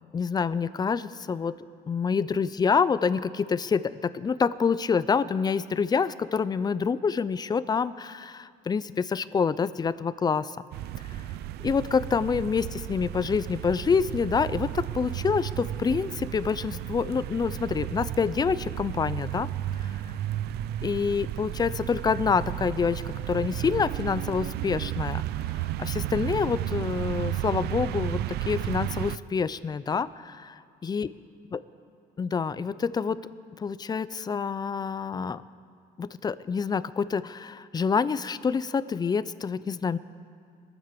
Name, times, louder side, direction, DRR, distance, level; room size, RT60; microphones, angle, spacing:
voice 1, 0.1-1.5 1.9-10.6 11.6-19.5 19.8-19.9 20.8-25.2 25.6-28.2 28.5-30.5 30.8-31.1 31.5-31.6 32.2-33.2 33.6-35.4 36.0-40.0, left 5 dB, 25° left, 16 dB, 0.4 m, -27 dB
sound 1, 10.7-29.2, right 12 dB, 75° right, 0.5 m, -33 dB
21.0 x 9.1 x 6.9 m, 2.2 s
cardioid pair, 110°, 17 cm